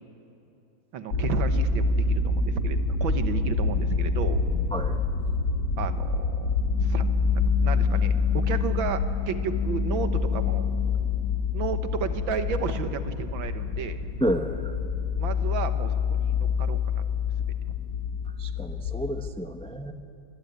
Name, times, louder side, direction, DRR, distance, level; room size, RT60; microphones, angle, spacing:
voice 1, 0.9-4.5 5.8-7.1 7.3-10.7 11.5-14.1 15.2-17.0 17.7-17.8, right 6 dB, 75° right, 10 dB, 1.9 m, -33 dB
sound 1, 1.1-19.3, left 4 dB, 50° left, 1.8 m, -26 dB
sound 2, 6.4-11.6 12.0-18.2, left 7 dB, 15° right, 3.7 m, -42 dB
voice 2, 14.2-14.7 18.4-19.9, equal, 10° left, 7 dB, 0.3 m, -30 dB
26.0 x 21.0 x 9.5 m, 2.8 s
omnidirectional pair, 2.2 m